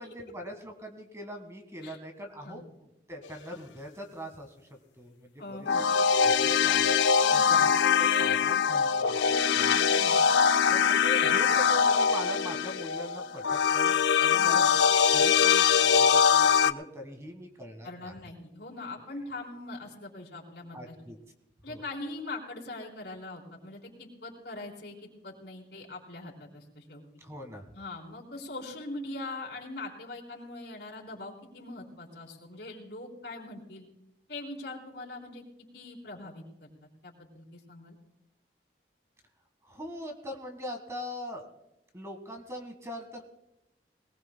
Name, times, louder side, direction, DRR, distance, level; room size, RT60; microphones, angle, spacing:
voice 1, 0.0-4.7 5.0-5.3 5.6-5.7 6.2-6.9 7.3-7.7 8.0-9.2 9.5-9.7 10.7-14.6 14.9-18.1 20.7-21.2 21.7-21.8 27.2-27.6 39.7-41.5 41.9-43.2, equal, 15° right, 4 dB, 1.6 m, -41 dB
voice 2, 5.4-5.8 7.2-7.6 9.6-10.2 14.3-14.6 17.8-20.9 21.6-27.0 27.7-33.8 34.3-35.4 35.7-36.7 37.0-37.9, left 2 dB, 70° left, -2 dB, 4.0 m, -42 dB
sound 1, 5.7-16.7, left 7 dB, 85° left, 0.5 m, -23 dB
21.0 x 19.5 x 2.2 m, 0.87 s
head